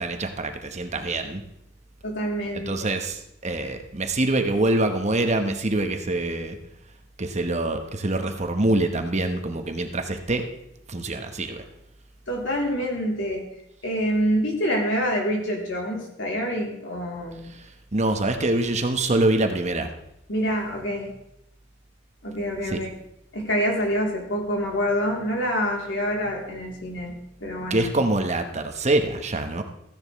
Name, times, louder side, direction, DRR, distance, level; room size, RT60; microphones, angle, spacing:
voice 1, 0.0-1.4 2.5-6.6 7.2-10.5 10.9-11.6 17.5-19.9 22.7-22.8 27.7-29.6, right 2 dB, 35° right, 6 dB, 1.1 m, -25 dB
voice 2, 2.0-2.7 12.3-13.4 13.8-17.5 20.3-21.1 22.2-22.9 23.3-27.1 27.4-27.9, equal, 80° left, -2 dB, 3.2 m, -26 dB
15.0 x 10.5 x 3.2 m, 0.80 s
head